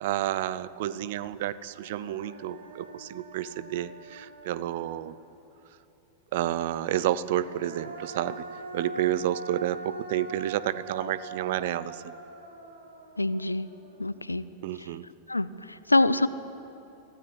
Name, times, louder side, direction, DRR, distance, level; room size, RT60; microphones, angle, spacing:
voice 1, 0.0-5.2 6.3-8.4 8.7-12.1 14.6-15.0, right 12 dB, 55° right, 18 dB, 0.7 m, -30 dB
Human voice, 1.2-1.3 1.7-5.4 7.0-14.3, right 3 dB, 70° right, 2.4 m, -43 dB
voice 2, 13.2-13.7 14.0-14.4 15.3-16.3, left 2 dB, 85° left, 16 dB, 0.7 m, -25 dB
23.5 x 15.5 x 9.7 m, 3.0 s
figure-of-eight pair, 90°, 0 cm